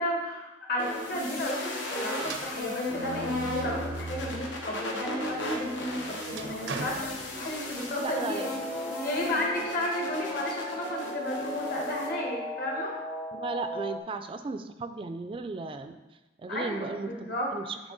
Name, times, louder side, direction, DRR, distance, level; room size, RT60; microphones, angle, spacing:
voice 1, 0.0-8.5 9.0-13.0 16.5-17.5, left 1 dB, 55° left, -2 dB, 1.5 m, -33 dB
sound 1, 0.8-12.1, left 2 dB, 90° left, 1.2 m, -36 dB
sound 2, 2.2-4.6 5.1-7.9, right 3 dB, 90° right, 0.6 m, -40 dB
sound 3, 8.0-14.0, left 1 dB, 25° left, 0.7 m, -37 dB
voice 2, 8.0-8.5 13.3-16.0 16.4-17.8, right 4 dB, 30° right, 8 dB, 0.3 m, -35 dB
9.7 x 3.3 x 4.0 m, 1.1 s
head